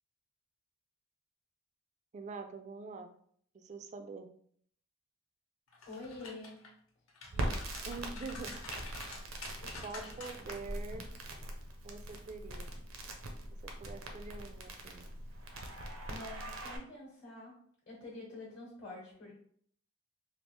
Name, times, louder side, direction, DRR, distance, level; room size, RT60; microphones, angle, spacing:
voice 1, 2.1-3.1 3.5-4.3 7.9-8.6 9.8-11.1 11.8-12.7 13.8-15.1, right 4 dB, 35° right, 7 dB, 0.3 m, -45 dB
sound 1, 5.7-6.7 7.1-10.5 10.9-11.1, left 3 dB, 85° left, 0.9 m, -48 dB
voice 2, 5.9-6.6 9.6-10.1 16.1-17.6 17.9-19.3, left 2 dB, 50° left, -5 dB, 0.9 m, -47 dB
Crackle, 7.3-16.8, right 1 dB, 80° right, 0.6 m, -42 dB
3.3 x 2.4 x 3.0 m, 0.62 s
head